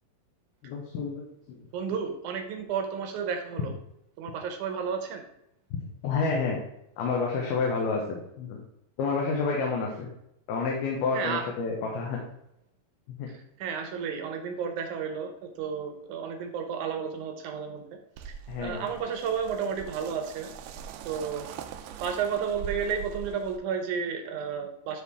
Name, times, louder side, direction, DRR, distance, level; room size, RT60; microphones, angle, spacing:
voice 1, 0.6-1.7 6.0-6.6 7.0-8.6 9.0-10.1 10.5-12.2 13.2-13.3 18.5-18.9, left 4 dB, 80° left, -1 dB, 3.1 m, -29 dB
voice 2, 1.7-3.7 4.2-5.3 11.1-11.5 13.3-17.8 18.2-20.5 21.1-21.5 22.0-25.0, right 6 dB, 70° right, 5 dB, 2.1 m, -32 dB
sound 1, 18.2-23.6, right 8 dB, 85° right, 2.6 m, -42 dB
12.0 x 4.3 x 3.5 m, 0.81 s
omnidirectional pair, 4.4 m